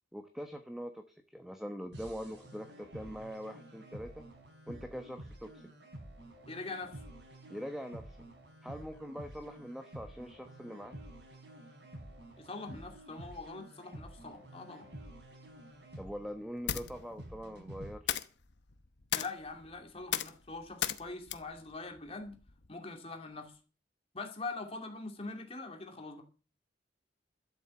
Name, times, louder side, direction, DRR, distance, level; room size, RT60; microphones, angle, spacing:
voice 1, 0.1-4.2 4.7-5.7 7.5-8.2 8.6-11.0 16.0-18.2, equal, ahead, 1.1 m, -43 dB
sound 1, 1.9-17.9, right 1 dB, 80° right, 5.3 m, -50 dB
voice 2, 6.5-7.0 12.4-14.9 19.1-22.4 22.7-23.6 24.1-26.2, left 3 dB, 35° left, 2.6 m, -43 dB
sound 2, 15.5-22.7, left 10 dB, 80° left, 0.9 m, -40 dB
12.5 x 7.7 x 7.7 m
head